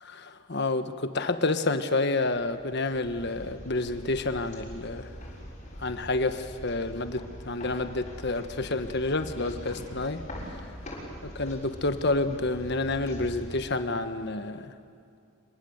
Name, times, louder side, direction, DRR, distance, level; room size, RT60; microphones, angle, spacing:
voice 1, 0.1-5.1 5.8-10.2 11.4-14.7, left 2 dB, 55° left, 9 dB, 1.3 m, -29 dB
sound 1, 2.4-14.4, equal, 35° left, 6.6 m, -43 dB
26.5 x 23.0 x 8.0 m, 2.5 s
head